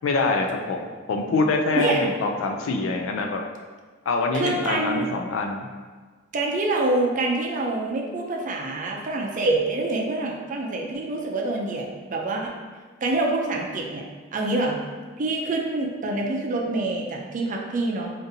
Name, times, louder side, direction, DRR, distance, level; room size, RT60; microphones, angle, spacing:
voice 1, 0.0-3.4 4.1-5.7, left 3 dB, 75° left, 3 dB, 0.3 m, -25 dB
voice 2, 4.3-5.1 6.3-12.5 13.0-14.0 14.3-14.8 15.2-18.1, right 2 dB, 40° right, 0 dB, 0.4 m, -26 dB
3.8 x 2.5 x 2.7 m, 1.4 s
head